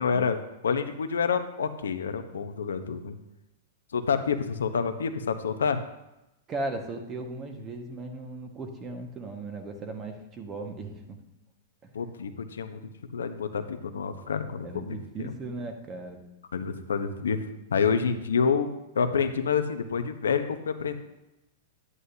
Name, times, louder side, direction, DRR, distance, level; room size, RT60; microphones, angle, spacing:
voice 1, 0.0-3.2 3.9-5.8 11.9-15.3 16.5-17.4 17.7-18.7 18.9-20.9, left 6 dB, 85° left, 8 dB, 0.8 m, -28 dB
voice 2, 6.5-11.2 11.8-11.9 14.6-16.2, right 2 dB, 30° right, 4 dB, 1.5 m, -37 dB
11.0 x 9.8 x 2.8 m, 0.93 s
hypercardioid pair, 115°, 0 cm